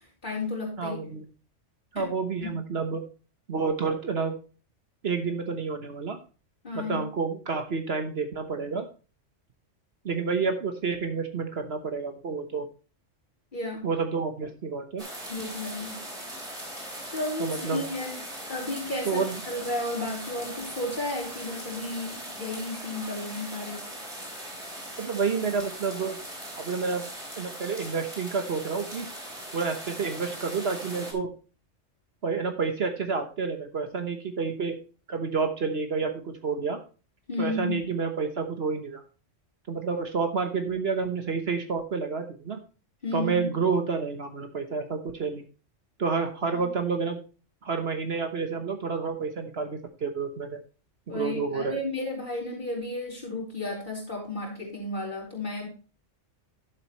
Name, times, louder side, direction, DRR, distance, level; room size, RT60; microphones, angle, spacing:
voice 1, 0.2-1.0 2.0-2.1 2.4-2.5 6.6-7.0 13.5-13.9 15.3-16.0 17.1-18.2 18.5-23.8 37.3-37.8 43.0-43.5 46.5-46.7 51.1-55.7, left 2 dB, 40° left, -3 dB, 4.2 m, -33 dB
voice 2, 0.8-1.3 1.9-3.0 3.5-4.3 5.0-6.2 6.7-8.8 10.0-12.7 13.8-15.0 17.4-17.8 19.1-19.4 25.0-26.2 26.6-27.0 27.4-29.1 29.5-31.3 32.2-34.8 35.1-36.8 37.4-39.0 39.7-42.6 43.1-45.4 46.0-47.2 47.6-50.6 51.1-51.8, right 5 dB, 55° right, 7 dB, 1.3 m, -29 dB
sound 1, 15.0-31.1, right 1 dB, 30° right, 3.6 m, -40 dB
11.5 x 7.7 x 3.1 m, 0.34 s
omnidirectional pair, 1.3 m